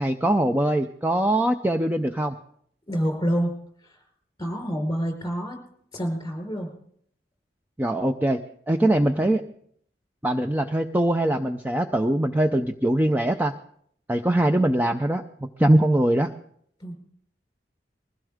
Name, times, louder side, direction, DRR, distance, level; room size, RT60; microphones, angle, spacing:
voice 1, 0.0-2.4 7.8-8.4 8.7-9.4 10.2-13.5 14.1-15.2 15.6-16.3, right 1 dB, 10° right, 6 dB, 0.5 m, -22 dB
voice 2, 2.9-3.5 3.8-4.0 4.4-5.6 5.9-6.7 9.0-9.2 16.8-16.9, equal, 20° left, 2 dB, 4.5 m, -27 dB
21.5 x 16.0 x 3.6 m, 0.65 s
head